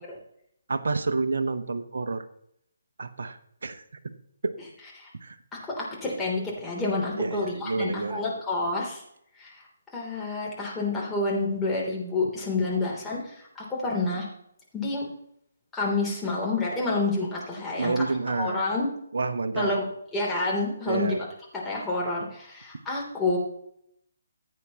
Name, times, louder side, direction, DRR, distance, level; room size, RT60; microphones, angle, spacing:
voice 1, 0.7-2.2 3.0-3.8 4.4-4.5 5.2-5.4 7.2-8.4 17.8-18.6 19.1-19.8 20.9-21.2, right 3 dB, 60° right, 8 dB, 0.9 m, -29 dB
voice 2, 5.6-9.0 9.4-9.6 9.9-14.3 14.7-15.0 15.7-18.0 18.4-18.9 19.5-21.3 21.5-23.4, left 3 dB, 10° left, -5 dB, 3.1 m, -29 dB
15.0 x 8.5 x 3.0 m, 0.72 s
figure-of-eight pair, 140°, 0 cm